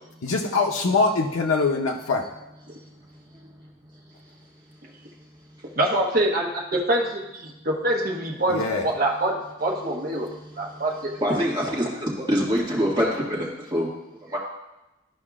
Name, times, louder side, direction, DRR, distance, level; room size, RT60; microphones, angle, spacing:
voice 1, 0.2-2.3 8.5-8.9, left 3 dB, 90° left, 1 dB, 0.7 m, -23 dB
voice 2, 5.8-10.3 10.6-11.1, right 1 dB, 45° right, -1 dB, 1.2 m, -25 dB
voice 3, 11.2-13.9 14.3-14.4, equal, 20° right, -6 dB, 1.9 m, -24 dB
12.5 x 5.4 x 2.4 m, 0.96 s
head